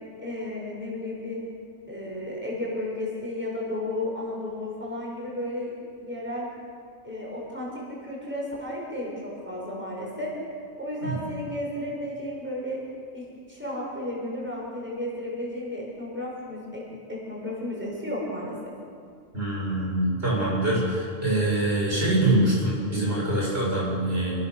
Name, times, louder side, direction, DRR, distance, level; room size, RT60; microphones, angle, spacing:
voice 1, 0.2-1.4 1.9-5.7 6.0-6.5 7.0-10.3 10.8-12.8 13.1-18.7, left 1 dB, 10° right, -4 dB, 7.1 m, -33 dB
voice 2, 19.3-24.5, right 1 dB, 55° right, -5 dB, 7.8 m, -24 dB
28.5 x 20.5 x 6.9 m, 2.2 s
omnidirectional pair, 1.3 m